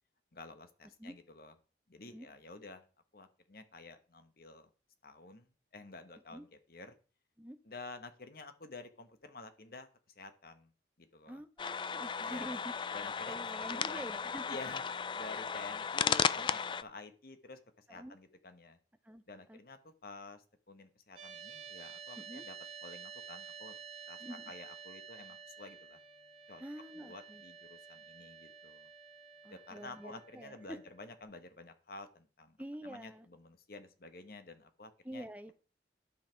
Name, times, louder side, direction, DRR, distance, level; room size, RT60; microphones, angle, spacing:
voice 1, 0.3-1.5 1.9-2.9 3.1-4.7 5.0-6.9 7.6-9.9 10.1-10.7 11.0-11.4 12.2-12.6 12.9-14.1 14.5-17.6 17.9-18.8 19.3-22.5 22.8-23.8 24.1-24.2 24.5-26.0 26.5-26.6 26.9-28.9 29.5-32.6 32.8-35.2, left 3 dB, 55° left, 8 dB, 1.3 m, -50 dB
voice 2, 11.3-12.7 13.3-14.4 15.3-15.4 16.1-16.5 17.9-18.2 19.0-19.2 19.5-19.6 22.2-22.5 24.2-24.5 26.6-27.4 29.4-30.8 32.6-33.3 35.0-35.5, equal, 10° right, 9 dB, 0.7 m, -47 dB
sound 1, 11.6-16.8, left 6 dB, 25° left, 0.3 m, -35 dB
sound 2, 21.2-31.2, right 7 dB, 35° right, 2.2 m, -51 dB
12.0 x 5.7 x 4.5 m, 0.37 s
head